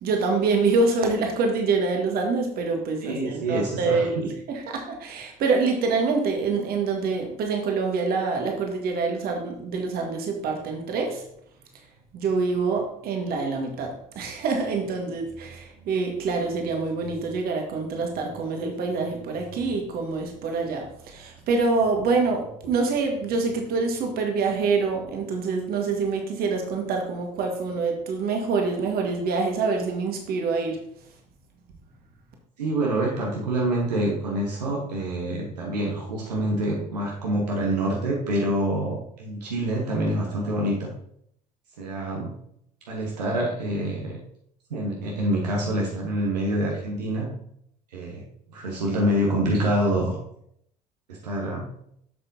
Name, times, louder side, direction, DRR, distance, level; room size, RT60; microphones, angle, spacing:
voice 1, 0.0-11.2 12.1-13.9 14.1-30.8, right 4 dB, 45° right, 2 dB, 1.7 m, -26 dB
voice 2, 3.0-4.2 32.6-40.9 41.8-42.3 42.9-44.2 44.7-47.3 47.9-48.2 48.5-50.2 51.1-51.7, right 1 dB, 75° right, -2 dB, 1.3 m, -26 dB
7.6 x 7.4 x 2.8 m, 0.70 s
figure-of-eight pair, 60°, 21 cm